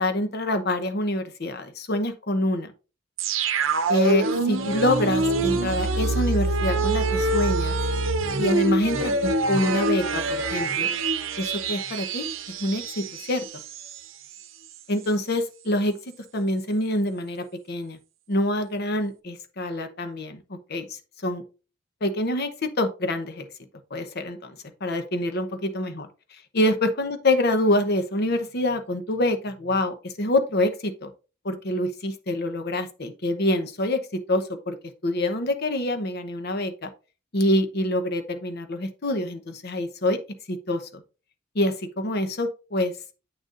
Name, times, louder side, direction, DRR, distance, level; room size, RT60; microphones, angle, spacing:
voice 1, 0.0-2.7 3.9-7.8 8.4-10.9 11.4-12.3 12.6-13.4 14.9-15.9 16.3-18.0 18.3-20.4 20.7-21.4 22.0-23.5 23.9-24.6 24.8-26.1 26.5-31.1 31.4-34.0 34.3-34.8 35.0-36.9 37.3-40.2 40.5-41.0 41.5-42.9, left 1 dB, 55° left, 8 dB, 0.9 m, -26 dB
sound 1, 3.2-14.0 14.3-14.4, right 2 dB, 85° right, 0.7 m, -25 dB
8.0 x 6.5 x 2.5 m, 0.33 s
head